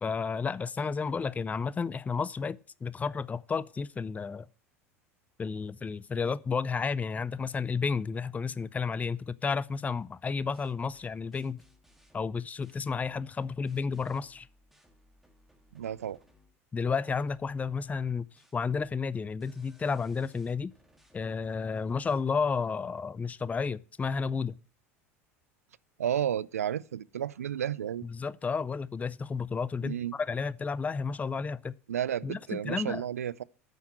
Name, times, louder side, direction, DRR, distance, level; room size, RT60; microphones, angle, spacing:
voice 1, 0.0-4.5 5.4-11.6 12.1-14.5 16.7-18.3 18.5-20.7 21.1-24.6 28.0-31.8 32.2-33.0, left 5 dB, 20° left, 0.5 m, -32 dB
sound 1, 10.4-16.6 17.0-22.7, left 1 dB, ahead, 1.9 m, -64 dB
voice 2, 15.7-16.2 26.0-28.0 29.8-30.1 31.9-33.4, right 10 dB, 85° right, 0.4 m, -32 dB
9.1 x 5.7 x 7.5 m
hypercardioid pair, 75°, 8 cm